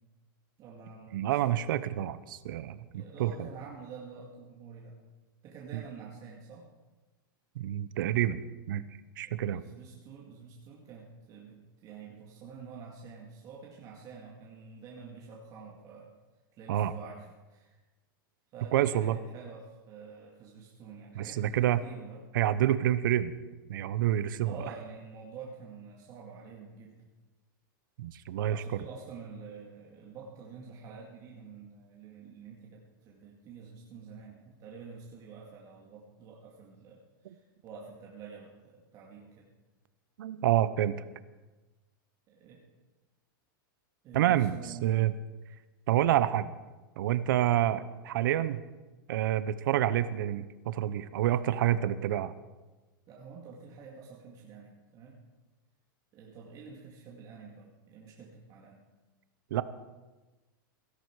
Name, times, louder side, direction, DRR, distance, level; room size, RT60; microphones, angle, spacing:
voice 1, 0.6-1.7 2.9-5.0 5.4-6.7 9.2-16.1 16.5-17.8 18.5-22.2 24.4-27.1 28.3-39.5 42.3-42.6 44.0-45.0 53.1-55.2 56.1-58.8, right 5 dB, 30° right, -3 dB, 2.2 m, -48 dB
voice 2, 1.1-3.3 7.6-8.4 8.7-8.8 9.2-9.6 16.7-16.9 18.7-19.2 21.1-21.8 22.3-23.3 23.7-24.6 28.0-28.6 40.2-41.0 44.1-45.1 45.9-46.5 47.0-48.6 49.1-52.3 59.5-59.6, right 12 dB, 70° right, 15 dB, 0.8 m, -28 dB
17.0 x 13.0 x 4.8 m, 1.2 s
supercardioid pair, 150°, 12 cm